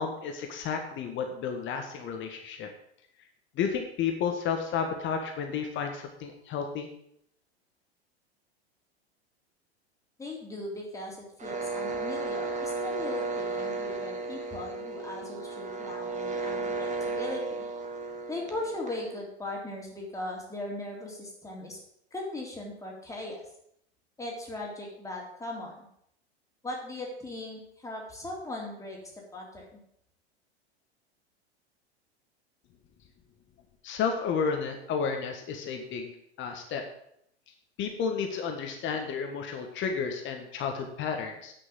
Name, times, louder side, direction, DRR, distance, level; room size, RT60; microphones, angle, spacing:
voice 1, 0.0-2.7 3.6-6.9 33.8-36.1 36.4-36.8 37.8-41.5, left 6 dB, 35° left, 4 dB, 1.5 m, -32 dB
voice 2, 10.2-17.6 18.3-21.8 22.1-23.4 24.2-25.9 26.6-29.0 29.3-29.8, left 2 dB, 10° left, -2 dB, 3.6 m, -38 dB
sound 1, 11.4-19.2, right 3 dB, 20° right, 1.8 m, -34 dB
9.8 x 6.2 x 7.6 m, 0.72 s
figure-of-eight pair, 90°, 33 cm